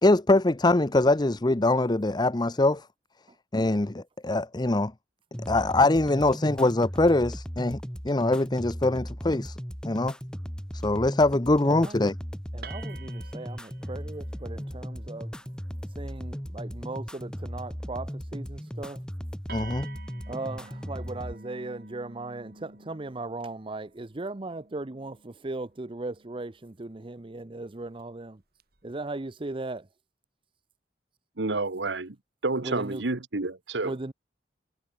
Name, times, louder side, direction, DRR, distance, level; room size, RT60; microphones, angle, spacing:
voice 1, 0.0-2.9 3.5-4.9 5.5-9.6 9.8-10.2 10.7-12.1 19.5-19.9, left 2 dB, 25° left, 0.8 m, -23 dB
sound 1, 5.3-21.3, equal, 5° left, 1.4 m, -37 dB
sound 2, 10.3-10.8 11.6-12.0 12.6-16.9 18.6-18.8 19.0-19.1 19.5-26.5 27.8-28.0 28.6-29.1, right 4 dB, 60° right, 7.0 m, -50 dB
voice 2, 11.6-11.9 12.5-15.3 16.0-19.0 20.3-28.4 28.8-29.9 31.9-32.0 32.6-33.0 33.8-34.1, right 2 dB, 30° right, 0.7 m, -37 dB
voice 3, 31.4-32.1 32.4-33.9, right 3 dB, 85° right, 1.3 m, -29 dB
head